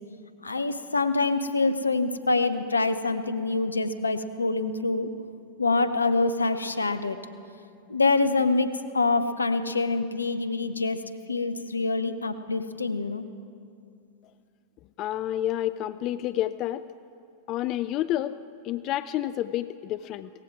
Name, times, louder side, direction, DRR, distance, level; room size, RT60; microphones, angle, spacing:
voice 1, 0.4-5.1 5.6-7.2 7.9-11.0 11.3-13.2, left 3 dB, 80° left, 11 dB, 0.7 m, -25 dB
voice 2, 15.0-16.9 17.5-20.3, left 13 dB, 40° left, 14 dB, 0.3 m, -29 dB
17.5 x 15.0 x 4.7 m, 2.4 s
figure-of-eight pair, 90°, 0 cm